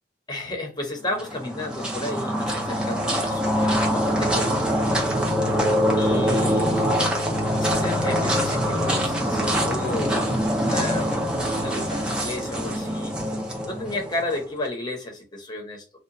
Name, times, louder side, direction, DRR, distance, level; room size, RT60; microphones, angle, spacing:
voice 1, 0.3-5.0 6.0-6.7 7.6-11.2 11.6-13.2 13.7-15.8, left 2 dB, 25° left, 0.8 m, -32 dB
sound 1, 1.1-14.4, equal, 5° right, 0.6 m, -24 dB
2.8 x 2.1 x 2.6 m
head